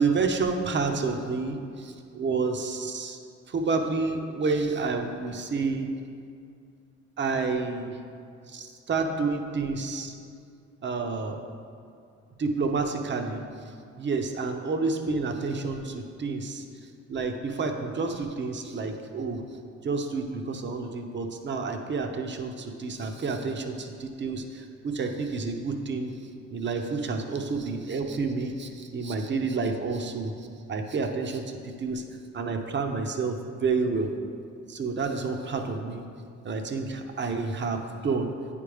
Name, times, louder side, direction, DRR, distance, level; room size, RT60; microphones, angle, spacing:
voice 1, 0.0-3.2 3.5-5.9 7.2-8.0 8.5-10.1 10.8-11.4 12.4-13.4 14.0-16.6 17.1-19.4 19.8-26.1 26.5-32.0 32.3-34.1 34.7-36.1 36.4-38.3, right 4 dB, 40° right, 5 dB, 0.7 m, -29 dB
8.8 x 5.0 x 3.4 m, 2.4 s
cardioid pair, 90°, 30 cm